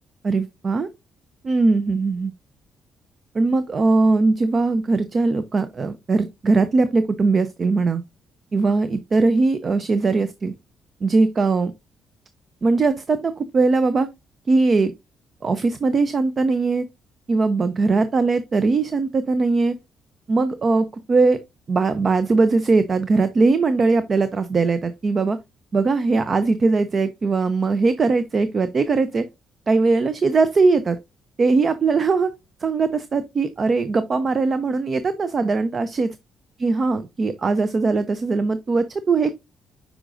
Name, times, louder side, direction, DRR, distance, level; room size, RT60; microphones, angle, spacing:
voice 1, 0.2-0.9 1.4-2.3 3.3-8.0 8.5-10.5 11.0-11.7 12.6-14.1 14.5-14.9 15.4-16.9 17.3-19.8 20.3-21.4 21.7-25.4 25.7-29.2 29.7-31.0 31.4-32.3 32.6-36.1 36.6-39.3, right 3 dB, 40° right, 0.6 m, -20 dB
8.0 x 5.0 x 2.6 m
cardioid pair, 90°, 0 cm